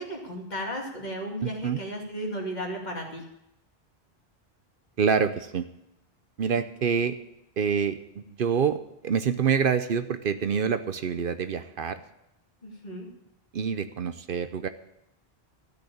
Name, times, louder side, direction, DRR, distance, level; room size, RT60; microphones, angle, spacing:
voice 1, 0.0-3.2 12.6-13.1, equal, 45° left, -1 dB, 2.6 m, -34 dB
voice 2, 1.4-1.8 5.0-5.6 6.4-7.2 7.6-12.0 13.5-14.7, right 6 dB, 60° right, 10 dB, 0.8 m, -26 dB
13.5 x 6.3 x 8.5 m, 0.84 s
omnidirectional pair, 1.0 m